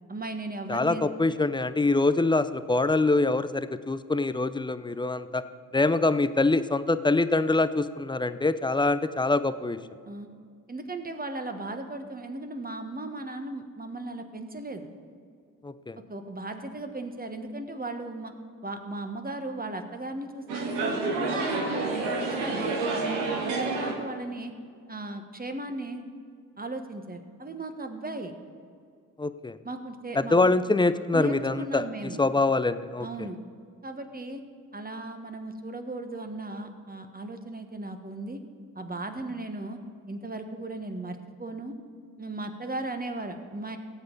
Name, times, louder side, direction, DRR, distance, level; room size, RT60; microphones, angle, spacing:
voice 1, 0.1-1.1 10.0-10.3 10.7-14.9 16.1-18.3 18.6-21.9 22.2-23.2 23.5-24.5 24.9-26.0 26.6-28.3 29.6-30.4 31.1-32.2 33.0-33.4 33.8-34.4 34.7-38.4 38.7-39.8 40.1-41.7 42.2-43.8, right 2 dB, 20° right, 6 dB, 1.4 m, -36 dB
voice 2, 0.7-5.4 5.7-9.8 15.6-16.0 29.2-29.6 30.2-31.9 32.2-33.1, left 3 dB, 10° left, 13 dB, 0.5 m, -24 dB
sound 1, 20.5-23.9, right 3 dB, 80° right, 1.5 m, -29 dB
17.5 x 8.0 x 4.0 m, 2.2 s
hypercardioid pair, 40°, 43 cm